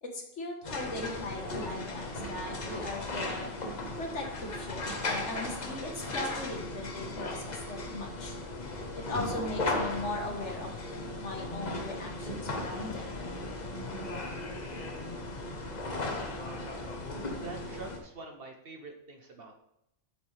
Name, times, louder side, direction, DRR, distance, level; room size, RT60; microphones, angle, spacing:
voice 1, 0.0-3.5 4.0-8.4 9.1-10.7 11.2-13.1, left 2 dB, 65° left, 2 dB, 1.7 m, -38 dB
sound 1, 0.6-18.0, left 2 dB, 35° left, 1.1 m, -36 dB
voice 2, 17.3-19.6, right 3 dB, 50° right, 3 dB, 1.2 m, -45 dB
8.3 x 7.7 x 3.4 m, 0.82 s
omnidirectional pair, 1.3 m